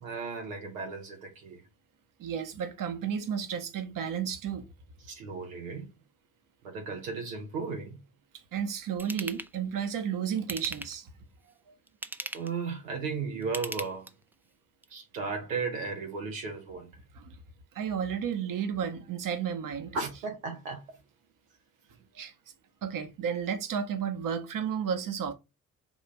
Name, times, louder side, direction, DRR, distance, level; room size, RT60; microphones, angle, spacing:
voice 1, 0.0-1.6 5.1-5.9 6.6-8.0 12.3-14.1 14.9-16.9 19.9-21.0, right 4 dB, 90° right, 0.7 m, -35 dB
voice 2, 2.2-4.6 8.5-11.1 17.1-17.4 17.7-20.0 22.1-22.3 22.8-25.3, right 7 dB, 55° right, 0.9 m, -32 dB
Ratchet pawl / Tools, 9.0-9.5 10.4-11.1 11.9-12.6 13.4-14.3 14.8-14.9, right 1 dB, 5° right, 0.4 m, -38 dB
3.6 x 2.5 x 4.5 m
hypercardioid pair, 40°, 39 cm